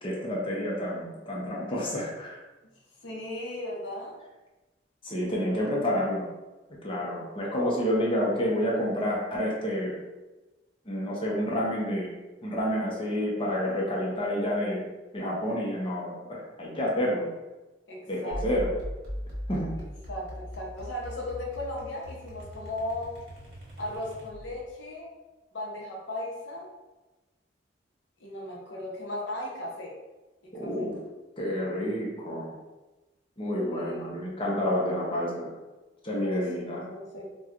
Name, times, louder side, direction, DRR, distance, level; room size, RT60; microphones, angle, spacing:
voice 1, 0.0-2.4 5.0-6.3 6.8-9.9 10.8-12.1 12.4-14.8 15.1-17.3 18.1-18.7 19.5-19.7 30.5-31.0 31.4-32.6 33.4-35.5 36.0-36.8, equal, 30° left, -4 dB, 0.7 m, -29 dB
voice 2, 3.0-4.2 17.9-18.4 20.1-23.1 23.8-25.1 25.5-26.7 28.2-29.9 30.4-30.7 33.7-34.1 36.2-36.4 36.7-37.3, left 1 dB, 85° left, -2 dB, 0.8 m, -36 dB
sound 1, 18.3-24.7, equal, 55° right, 1.2 m, -40 dB
4.3 x 2.3 x 2.4 m, 1.1 s
head